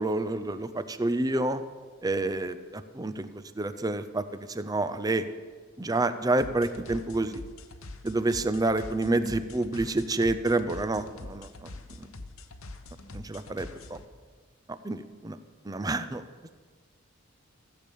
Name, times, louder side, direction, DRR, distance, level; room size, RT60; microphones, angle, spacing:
voice 1, 0.0-1.6 2.0-3.3 3.5-5.3 5.8-7.4 8.0-11.7 12.0-12.1 13.1-14.0 14.8-15.4 15.6-16.2, right 2 dB, 20° right, 11 dB, 0.6 m, -28 dB
sound 1, 6.4-14.0, left 2 dB, 80° left, 1.0 m, -44 dB
15.0 x 7.0 x 8.4 m, 1.5 s
head